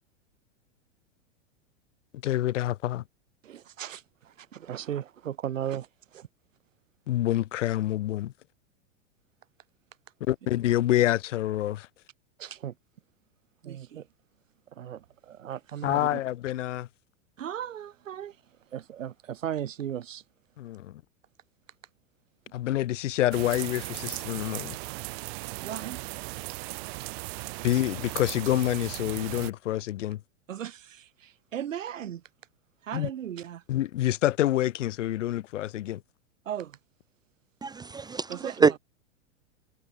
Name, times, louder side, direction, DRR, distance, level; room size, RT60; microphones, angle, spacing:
voice 1, 2.2-3.0 7.1-8.3 10.3-11.9 15.8-16.9 20.6-21.0 22.5-24.8 27.6-30.2 32.9-33.1 33.7-36.0, left 13 dB, 70° left, 4.0 m, -27 dB
voice 2, 3.4-5.9 6.1-6.3 12.4-12.7 13.6-14.1 14.8-16.2 17.4-18.4 18.7-20.2 25.6-26.0 30.5-32.2 32.8-33.6 36.5-36.8 38.3-38.7, right 10 dB, 85° right, 5.4 m, -36 dB
sound 1, 23.3-29.5, right 27 dB, 55° right, 1.7 m, -37 dB
voice 3, 37.6-38.8, right 5 dB, 10° right, 0.5 m, -25 dB
hypercardioid pair, 115°, 38 cm